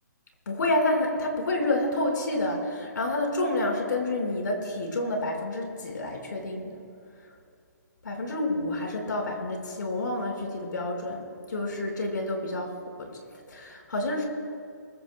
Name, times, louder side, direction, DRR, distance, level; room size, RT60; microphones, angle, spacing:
voice 1, 0.4-6.8 8.0-13.2 13.5-14.2, left 2 dB, 85° left, 1 dB, 5.1 m, -29 dB
24.5 x 22.5 x 2.3 m, 2.2 s
hypercardioid pair, 170°, 10 cm